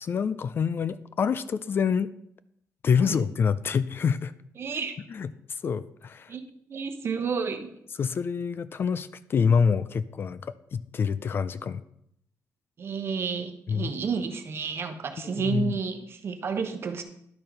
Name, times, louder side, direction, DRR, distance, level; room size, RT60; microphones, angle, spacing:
voice 1, 0.0-2.1 2.8-4.3 5.1-6.3 8.0-11.8 13.7-13.9 15.3-15.8, left 6 dB, 40° left, 15 dB, 0.3 m, -26 dB
voice 2, 4.6-4.9 6.3-7.7 12.8-17.0, right 5 dB, 45° right, 7 dB, 0.9 m, -31 dB
10.5 x 4.4 x 5.1 m, 0.73 s
cardioid pair, 120°, 6 cm